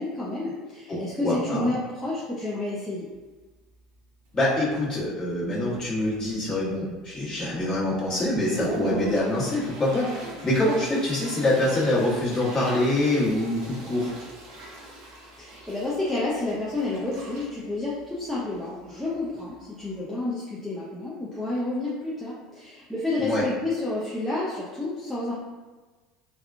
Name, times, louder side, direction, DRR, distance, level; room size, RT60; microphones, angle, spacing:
voice 1, 0.0-3.1 15.4-25.3, left 2 dB, 5° left, -8 dB, 0.6 m, -30 dB
voice 2, 0.9-1.7 4.3-14.1 23.2-23.4, left 1 dB, 25° left, -7 dB, 1.3 m, -25 dB
Toilet flush, 3.1-3.2 3.7-4.0 4.3-4.8 5.3-5.4 5.7-6.5 6.9-7.0 7.6-7.7 8.1-20.0, right 1 dB, 70° right, 0.8 m, -40 dB
3.4 x 2.3 x 2.4 m, 1.3 s
hypercardioid pair, 85°, 3 cm